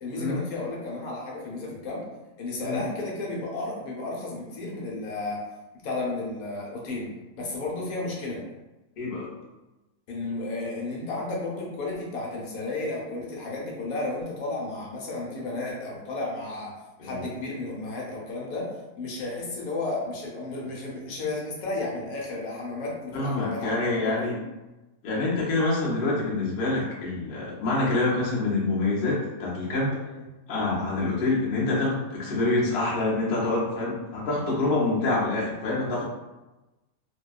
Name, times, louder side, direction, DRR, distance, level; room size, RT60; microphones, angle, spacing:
voice 1, 0.0-2.0 2.4-5.4 5.8-7.1 7.3-8.4 10.1-16.7 17.0-18.7 19.0-23.7 24.0-24.3 30.0-30.2, left 2 dB, 85° left, -3 dB, 1.1 m, -33 dB
voice 2, 9.0-9.3 17.0-17.2 23.1-24.3 25.0-29.9 30.5-36.0, left 2 dB, 50° left, -5 dB, 0.7 m, -26 dB
2.6 x 2.2 x 2.3 m, 1.1 s
omnidirectional pair, 1.5 m